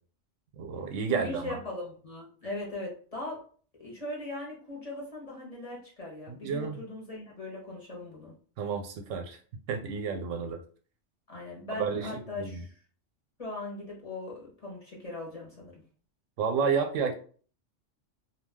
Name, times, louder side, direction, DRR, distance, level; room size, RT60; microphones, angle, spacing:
voice 1, 0.6-1.6 6.3-6.8 8.6-9.4 9.7-10.6 11.7-12.6 16.4-17.1, right 6 dB, 90° right, 5 dB, 1.0 m, -31 dB
voice 2, 1.1-3.4 3.8-8.3 11.3-12.7 13.4-15.8, left 2 dB, 35° left, -3 dB, 0.8 m, -39 dB
2.3 x 2.3 x 3.5 m, 0.43 s
omnidirectional pair, 1.3 m